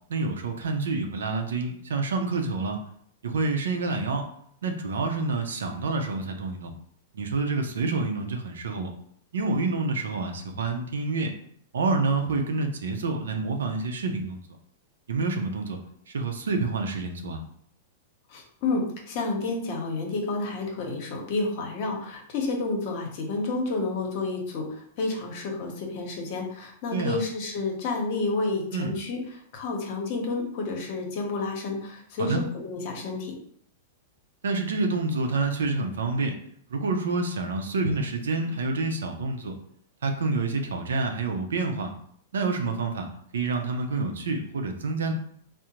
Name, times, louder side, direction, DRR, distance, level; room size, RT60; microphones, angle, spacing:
voice 1, 0.1-2.8 3.2-4.3 4.6-6.7 7.1-8.9 9.3-11.3 11.7-14.4 15.1-15.8 16.1-17.4 26.9-27.2 28.7-29.0 32.2-32.4 34.4-36.4 36.7-39.5 40.0-41.9 42.3-43.1 43.3-45.1, right 3 dB, 85° right, 4 dB, 0.5 m, -28 dB
voice 2, 18.3-29.2 29.5-33.3, left 3 dB, 55° left, 1 dB, 0.9 m, -30 dB
3.6 x 2.0 x 2.9 m, 0.66 s
hypercardioid pair, 125°, 0 cm